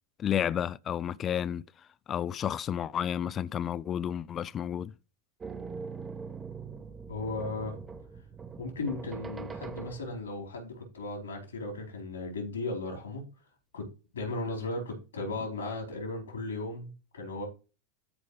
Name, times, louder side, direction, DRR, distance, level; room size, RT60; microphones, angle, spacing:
voice 1, 0.2-1.6 2.1-4.9, left 9 dB, 35° left, 0.4 m, -31 dB
sound 1, 5.4-10.5, right 5 dB, 25° right, 1.1 m, -42 dB
voice 2, 7.1-7.8 8.6-13.2 13.7-13.8 14.1-17.5, left 2 dB, 80° left, 4.4 m, -36 dB
13.5 x 5.0 x 3.3 m
figure-of-eight pair, 85°, 0 cm